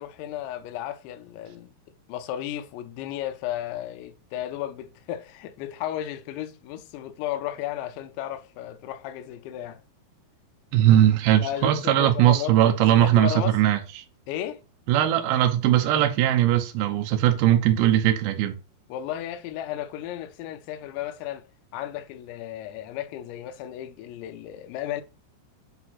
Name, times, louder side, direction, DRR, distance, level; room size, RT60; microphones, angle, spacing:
voice 1, 0.0-1.7 2.1-9.8 11.4-13.6 14.3-14.6 18.9-21.5 21.7-25.0, left 12 dB, 85° left, 3.0 m, -34 dB
voice 2, 10.7-13.8 14.9-18.5, right 12 dB, 75° right, 2.3 m, -20 dB
7.9 x 2.9 x 5.7 m
omnidirectional pair, 5.2 m